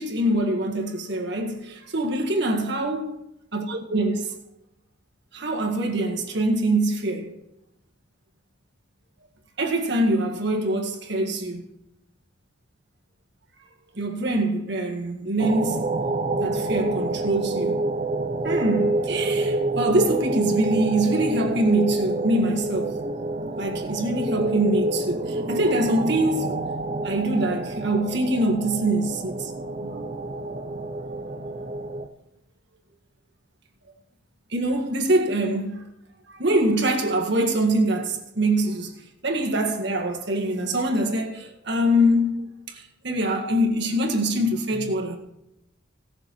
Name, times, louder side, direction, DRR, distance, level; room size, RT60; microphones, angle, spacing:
voice 1, 0.0-3.2 3.5-4.4 5.3-7.3 9.6-11.7 14.0-15.9 16.4-17.8 18.4-23.0 23.6-26.6 27.0-29.5 29.8-30.3 34.5-35.9 36.3-45.2, right 1 dB, 55° right, 1.8 m, -24 dB
sound 1, 15.4-32.1, right 2 dB, 35° right, 0.8 m, -28 dB
18.0 x 6.5 x 4.6 m
head